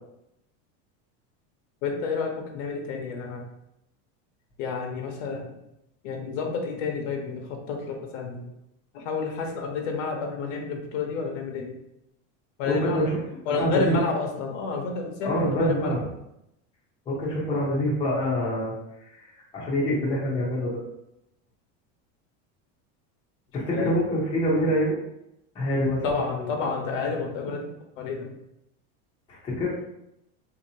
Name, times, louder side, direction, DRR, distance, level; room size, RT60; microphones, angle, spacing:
voice 1, 1.8-3.4 4.6-5.5 6.0-8.5 8.9-11.7 12.6-13.2 13.5-16.0 23.7-24.0 26.0-27.6 28.0-28.3, left 4 dB, 80° left, 2 dB, 0.9 m, -30 dB
voice 2, 12.6-13.2 13.5-14.0 15.2-16.0 17.1-18.7 19.1-20.8 23.5-25.0 25.5-26.5 29.3-29.7, equal, 15° left, -6 dB, 0.6 m, -26 dB
3.8 x 2.8 x 2.7 m, 0.83 s
cardioid pair, 180°, 36 cm